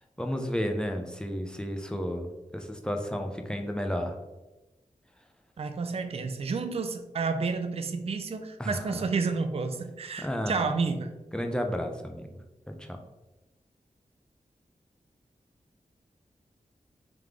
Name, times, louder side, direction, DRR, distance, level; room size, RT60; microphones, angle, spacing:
voice 1, 0.2-4.2 8.6-8.8 10.2-10.6 11.3-12.3 12.7-13.0, equal, 5° left, 3 dB, 0.6 m, -32 dB
voice 2, 5.6-11.2, right 4 dB, 45° right, 7 dB, 0.4 m, -30 dB
3.6 x 3.1 x 3.6 m, 1.0 s
cardioid pair, 55°, 14 cm